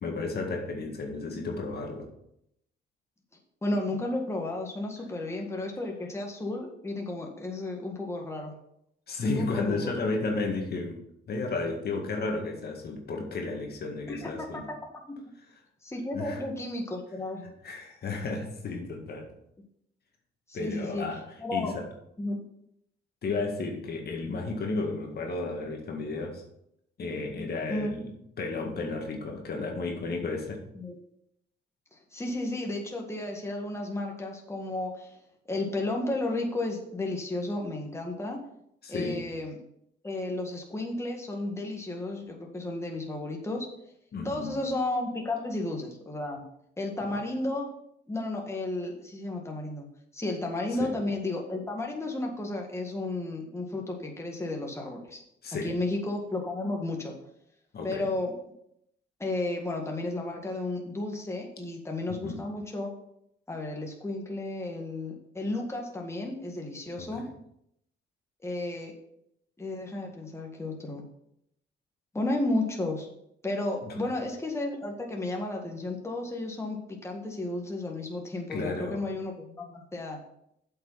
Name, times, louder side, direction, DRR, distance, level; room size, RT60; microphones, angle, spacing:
voice 1, 0.0-2.1 9.1-11.0 11.3-14.7 16.1-16.4 17.6-19.3 20.5-21.8 23.2-26.4 27.0-30.6 38.8-39.3 44.1-44.5 47.0-47.2 50.8-50.9 55.4-55.7 57.7-58.1 62.1-62.4 67.0-67.3 73.8-74.0 78.5-79.0, left 3 dB, 55° left, 2 dB, 1.9 m, -33 dB
voice 2, 3.6-8.6 9.2-9.9 14.1-14.8 15.1-15.2 15.8-17.5 20.5-21.1 21.4-21.7 22.2-22.4 27.7-28.0 30.7-30.9 31.9-35.2 35.5-38.4 38.9-39.6 40.0-43.7 44.2-46.4 46.8-47.7 48.1-49.9 50.1-55.2 55.5-57.1 57.8-58.4 59.2-62.9 63.5-67.3 68.4-68.9 69.6-71.0 72.1-73.1 73.4-80.2, left 2 dB, 15° left, 0 dB, 1.8 m, -33 dB
7.9 x 6.0 x 5.7 m, 0.76 s
cardioid pair, 90°, 20 cm